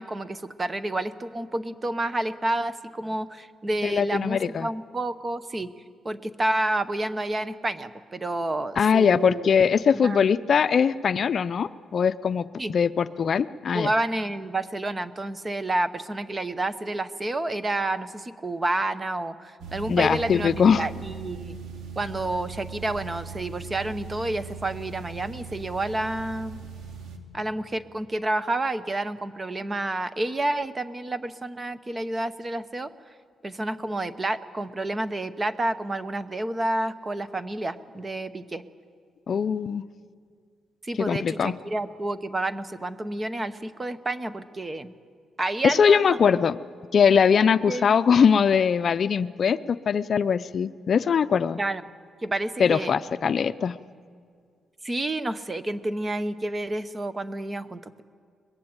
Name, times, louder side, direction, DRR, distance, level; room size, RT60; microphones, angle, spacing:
voice 1, 0.0-5.7 6.0-9.5 10.0-10.3 12.6-12.7 13.7-21.6 22.0-26.6 27.3-32.9 33.4-38.6 40.8-44.9 45.4-46.2 47.7-48.0 51.6-51.8 52.2-52.9 54.8-58.0, right 2 dB, 20° right, 13 dB, 0.9 m, -29 dB
voice 2, 3.8-4.7 8.8-13.9 19.9-20.8 39.3-39.8 41.0-41.5 45.6-46.6 46.9-51.6 52.6-53.8, left 6 dB, 50° left, 13 dB, 0.5 m, -21 dB
sound 1, 19.6-27.2, right 6 dB, 75° right, 2.4 m, -39 dB
23.0 x 21.0 x 8.9 m, 2.1 s
cardioid pair, 130°, 0 cm